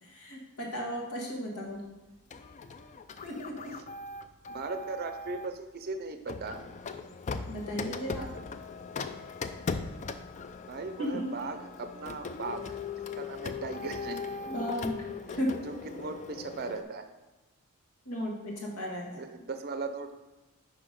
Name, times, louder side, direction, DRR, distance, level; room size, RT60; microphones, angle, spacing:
voice 1, 0.0-1.9 3.2-3.7 7.5-8.3 11.0-11.3 14.5-15.0 15.4-15.6 18.1-19.2, equal, 80° left, -1 dB, 1.7 m, -35 dB
Printer, 2.3-5.6 6.3-16.8, left 4 dB, 35° left, 0.3 m, -39 dB
voice 2, 4.5-6.6 10.7-12.7 13.1-14.2 15.3-15.4 15.6-17.0 19.2-20.1, right 3 dB, 45° right, 8 dB, 0.5 m, -38 dB
5.9 x 5.0 x 5.1 m, 1.1 s
head